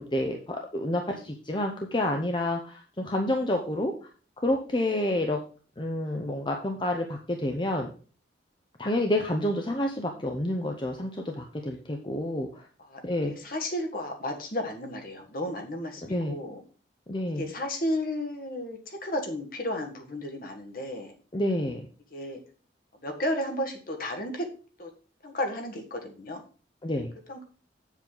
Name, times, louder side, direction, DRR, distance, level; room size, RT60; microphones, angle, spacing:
voice 1, 0.0-3.9 4.4-5.4 5.8-7.9 8.8-12.7 13.0-13.3 16.1-16.3 17.1-17.5 21.3-21.9 26.8-27.1, left 1 dB, 25° left, 3 dB, 0.7 m, -29 dB
voice 2, 13.3-16.6 17.4-21.1 22.1-22.4 22.9-24.5 24.8-24.9 25.2-26.4 27.3-27.4, left 1 dB, 50° left, 4 dB, 1.5 m, -33 dB
7.6 x 7.2 x 3.8 m, 0.38 s
head